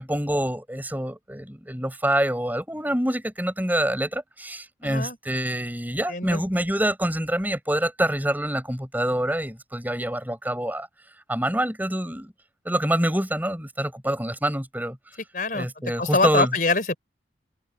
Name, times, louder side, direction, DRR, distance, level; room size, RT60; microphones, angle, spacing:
voice 1, 0.0-10.9 11.3-12.3 12.6-15.0 15.5-16.5, right 1 dB, 10° right, 5.7 m, -26 dB
voice 2, 4.8-5.2 6.1-6.4 15.3-15.7 16.0-17.0, left 3 dB, 50° left, 4.6 m, -24 dB
head